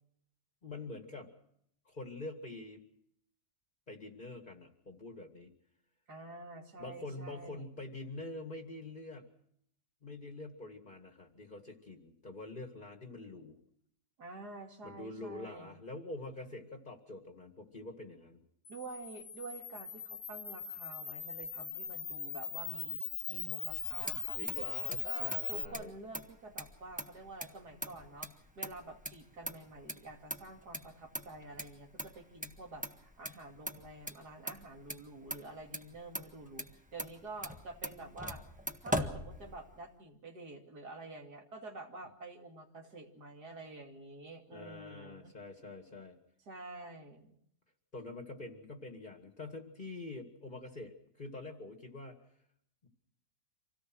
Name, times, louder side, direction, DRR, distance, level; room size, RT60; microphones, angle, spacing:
voice 1, 0.6-1.3 1.9-2.8 3.9-5.5 6.8-9.3 10.0-13.6 14.8-18.4 24.3-25.9 44.5-46.2 47.9-52.2 52.8-52.9, left 2 dB, 30° left, 4 dB, 2.1 m, -46 dB
voice 2, 6.1-7.7 14.2-15.8 18.7-23.0 23.3-24.4 25.0-28.3 28.6-38.4 38.8-45.3 46.5-47.3, right 2 dB, 80° right, 2 dB, 3.2 m, -48 dB
Camera, 18.6-25.6, left 7 dB, 85° left, 2.0 m, -40 dB
Motor vehicle (road), 23.7-39.9, equal, 5° right, 1.3 m, -43 dB
26.5 x 17.5 x 6.3 m, 0.72 s
omnidirectional pair, 1.7 m